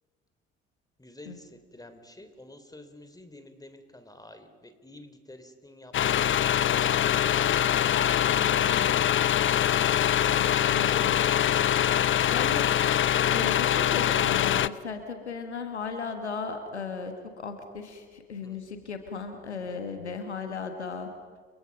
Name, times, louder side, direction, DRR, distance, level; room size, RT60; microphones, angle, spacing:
voice 1, 1.0-7.4 18.4-18.6, left 1 dB, 10° left, 8 dB, 3.5 m, -49 dB
sound 1, 5.9-14.7, left 10 dB, 35° left, 0.7 m, -23 dB
voice 2, 8.3-9.0 10.3-11.5 11.9-13.0 13.3-21.1, left 5 dB, 90° left, 6 dB, 1.6 m, -37 dB
30.0 x 25.5 x 5.4 m, 1.5 s
figure-of-eight pair, 45°, 33 cm